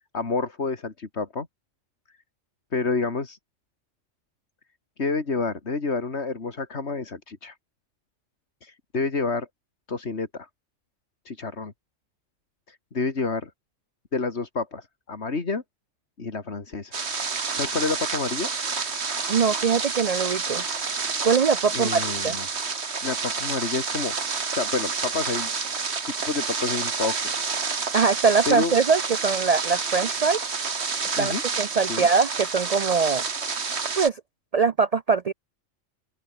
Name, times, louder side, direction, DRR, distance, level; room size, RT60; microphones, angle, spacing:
voice 1, 0.1-1.5 2.7-3.4 5.0-7.6 8.6-9.5 9.9-10.5 11.2-11.7 12.7-13.5 14.1-15.6 16.2-17.0 17.5-18.5 21.7-22.5 23.0-25.5 26.3-27.3 28.5-28.8 31.2-31.4 31.9-32.1, left 4 dB, 55° left, 2.6 m, -29 dB
sound 1, 16.9-34.1, right 5 dB, 55° right, 2.1 m, -29 dB
voice 2, 19.3-20.6 21.2-22.4 27.9-30.4 31.2-33.2 34.0-34.2 34.5-35.3, right 5 dB, 80° right, 0.3 m, -22 dB
open air
omnidirectional pair, 1.4 m